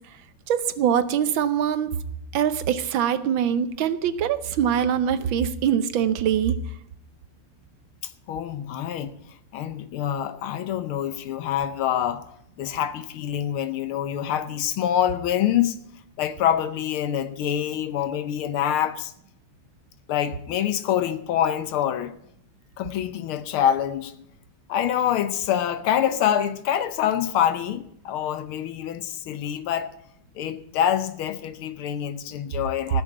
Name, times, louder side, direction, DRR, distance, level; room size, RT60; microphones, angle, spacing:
voice 1, 0.5-1.9 2.3-6.6, right 9 dB, 70° right, 1.4 m, -23 dB
voice 2, 8.3-9.1 9.5-12.2 12.6-15.8 16.2-19.1 20.1-22.1 22.8-24.1 24.7-29.9 30.3-33.0, left 10 dB, 80° left, 1.7 m, -25 dB
15.5 x 6.6 x 8.7 m
omnidirectional pair, 2.3 m